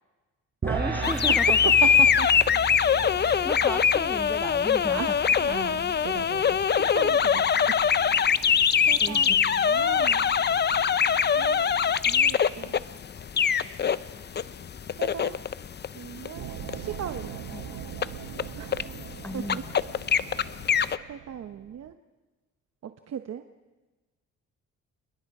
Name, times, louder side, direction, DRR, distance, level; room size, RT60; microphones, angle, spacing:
sound 1, 0.6-7.0, right 4 dB, 35° right, 6.1 m, -36 dB
voice 1, 0.7-1.6 3.2-5.2 9.0-9.4 17.5-17.6 19.2-19.7, left 1 dB, 5° left, 13 dB, 0.9 m, -35 dB
sound 2, 1.0-21.0, left 7 dB, 35° left, 0.7 m, -23 dB
voice 2, 4.9-6.6 6.9-7.7 8.5-10.3 11.3-11.7 12.1-12.8 15.0-15.4 15.9-17.4 18.6-18.8 19.3-19.6 20.3-20.5 21.1-21.9 22.8-23.4, right 9 dB, 55° right, 8 dB, 1.0 m, -38 dB
sound 3, 16.3-21.9, right 14 dB, 80° right, 0.8 m, -42 dB
28.5 x 21.5 x 4.9 m, 1.2 s
cardioid pair, 90°, 30 cm